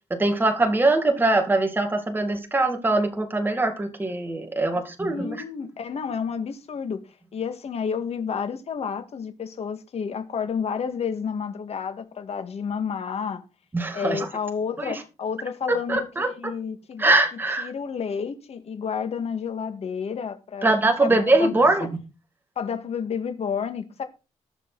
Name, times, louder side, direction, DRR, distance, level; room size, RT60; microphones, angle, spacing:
voice 1, 0.1-5.4 13.7-14.3 14.8-15.0 15.7-16.3 17.0-17.7 20.6-21.9, right 2 dB, 15° right, 2.4 m, -22 dB
voice 2, 5.1-7.0 7.3-13.4 13.9-16.0 16.4-17.1 17.6-20.7 21.0-21.7 22.6-24.0, left 6 dB, 60° left, 2.0 m, -30 dB
19.0 x 7.0 x 4.1 m
cardioid pair, 100°, 12 cm